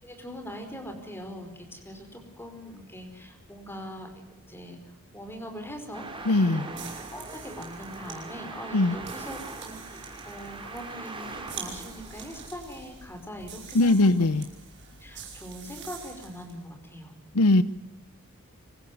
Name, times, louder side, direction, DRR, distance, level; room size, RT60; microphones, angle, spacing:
voice 1, 0.0-2.1 2.4-4.1 4.5-14.3 15.0-17.2, equal, 10° left, 5 dB, 4.8 m, -42 dB
Traffic noise roadway noise, 5.9-12.5, right 3 dB, 25° right, 3.0 m, -41 dB
voice 2, 6.3-6.7 8.7-9.0 13.7-14.4 17.3-17.6, left 2 dB, 80° left, 16 dB, 0.8 m, -20 dB
sound 1, 6.7-16.6, right 6 dB, 50° right, 7.9 m, -45 dB
25.5 x 15.0 x 9.6 m, 0.91 s
head